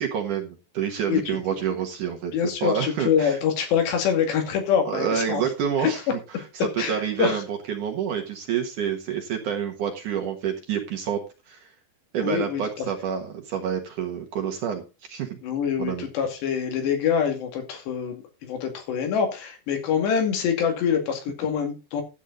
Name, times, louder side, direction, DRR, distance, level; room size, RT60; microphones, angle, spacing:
voice 1, 0.0-2.3 2.6-3.4 4.9-6.0 6.4-11.2 11.5-11.7 12.1-15.4 15.8-16.1, right 8 dB, 60° right, 3 dB, 2.5 m, -28 dB
voice 2, 2.3-5.4 5.8-5.9 6.8-7.4 12.2-12.6 15.4-22.0, left 7 dB, 80° left, 4 dB, 4.5 m, -25 dB
12.0 x 8.4 x 4.0 m, 0.29 s
omnidirectional pair, 4.9 m